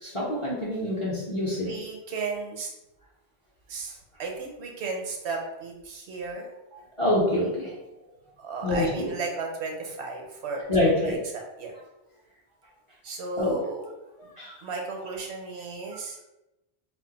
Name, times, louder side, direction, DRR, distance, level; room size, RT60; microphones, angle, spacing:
voice 1, 0.0-1.7 7.0-7.8 8.6-9.1 10.7-11.2 13.4-13.6 14.4-14.6, left 1 dB, 40° left, -5 dB, 0.5 m, -26 dB
voice 2, 1.6-2.7 3.7-6.5 8.4-11.7 13.0-13.9 14.6-16.2, right 4 dB, 75° right, 1 dB, 0.9 m, -34 dB
2.4 x 2.2 x 3.8 m, 0.97 s
omnidirectional pair, 1.2 m